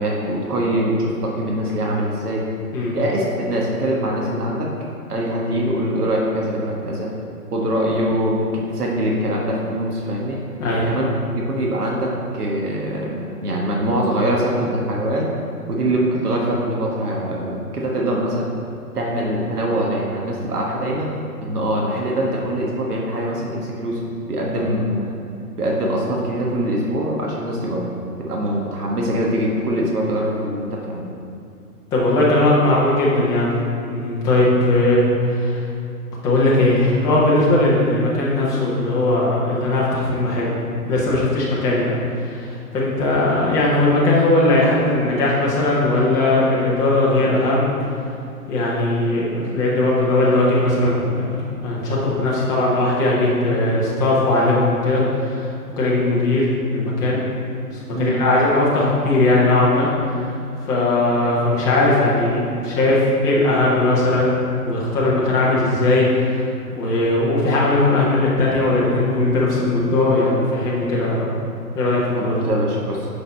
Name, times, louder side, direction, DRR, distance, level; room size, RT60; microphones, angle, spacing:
voice 1, 0.0-2.4 2.9-4.7 5.1-7.1 7.5-10.4 10.9-15.3 15.7-18.5 18.9-21.1 21.4-24.0 24.3-25.1 25.6-27.8 28.2-31.0 57.9-58.2 72.2-73.1, right 1 dB, 75° right, -2 dB, 1.4 m, -23 dB
voice 2, 31.9-33.5 33.9-35.7 36.2-40.5 40.9-41.9 42.2-47.7 48.5-55.5 55.8-57.2 57.9-59.9 60.7-66.4 66.7-71.4 71.7-72.4, left 2 dB, 10° left, -6 dB, 0.5 m, -19 dB
6.6 x 5.3 x 4.2 m, 2.5 s
hypercardioid pair, 130°, 46 cm